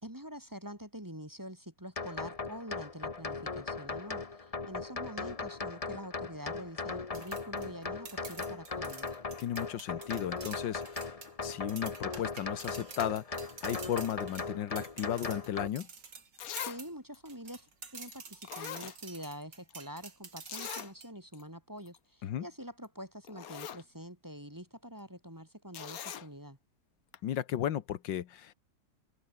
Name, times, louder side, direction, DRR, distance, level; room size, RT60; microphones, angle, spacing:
voice 1, 0.0-9.2 16.6-26.6, equal, 10° right, 3.2 m, -46 dB
sound 1, 2.0-15.7, left 4 dB, 25° left, 1.0 m, -39 dB
sound 2, 7.1-16.9 17.3-21.1, right 5 dB, 75° right, 3.5 m, -48 dB
voice 2, 9.4-11.1 11.4-15.9 22.2-22.5 27.2-28.5, left 10 dB, 85° left, 1.8 m, -35 dB
Zipper (clothing), 15.8-15.9 16.4-16.8 17.1-17.2 18.1-18.2 18.4-19.4 19.7-19.8 20.5-20.9 21.3-21.4 21.8-22.0 22.8-22.9 23.2-23.8 25.7-26.3 27.1-27.2, left 9 dB, 55° left, 1.3 m, -42 dB
open air
omnidirectional pair, 2.0 m